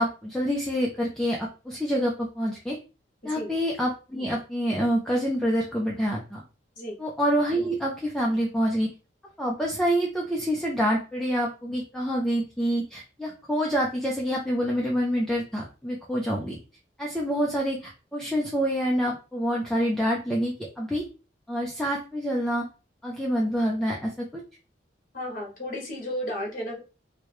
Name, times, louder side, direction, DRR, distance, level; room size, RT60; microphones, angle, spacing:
voice 1, 0.0-2.8 3.2-6.4 7.0-8.9 9.4-16.6 17.0-21.0 21.5-22.6 23.0-24.1, equal, 5° left, -2 dB, 0.5 m, -27 dB
voice 2, 25.1-26.8, equal, 45° left, -1 dB, 1.5 m, -33 dB
4.6 x 2.2 x 3.1 m, 0.33 s
head